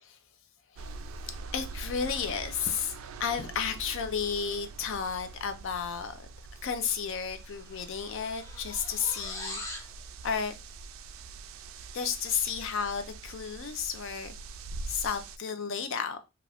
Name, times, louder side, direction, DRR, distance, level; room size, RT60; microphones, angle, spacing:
sound 1, 0.8-15.4, right 3 dB, 65° right, 0.3 m, -44 dB
voice 1, 1.5-2.9 3.2-6.3 6.6-9.6 10.2-10.5 11.9-14.3 14.9-16.2, left 6 dB, 60° left, 0.4 m, -32 dB
sound 2, 7.0-7.1 7.2-9.9, left 1 dB, 15° left, 0.6 m, -42 dB
2.5 x 2.3 x 3.3 m
head